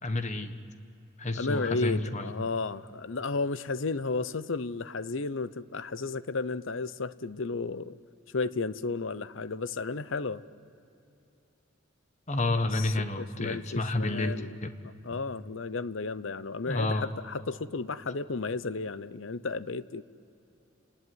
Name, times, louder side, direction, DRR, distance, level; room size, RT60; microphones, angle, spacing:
voice 1, 0.0-0.6 1.2-2.3 12.3-14.3 14.6-14.7 15.1-15.2 16.7-17.1, left 2 dB, 35° left, 9 dB, 1.3 m, -30 dB
voice 2, 1.4-8.0 8.3-10.4 12.7-14.5 15.0-20.0, left 3 dB, 65° left, 16 dB, 0.7 m, -33 dB
29.5 x 19.5 x 9.6 m, 2.7 s
head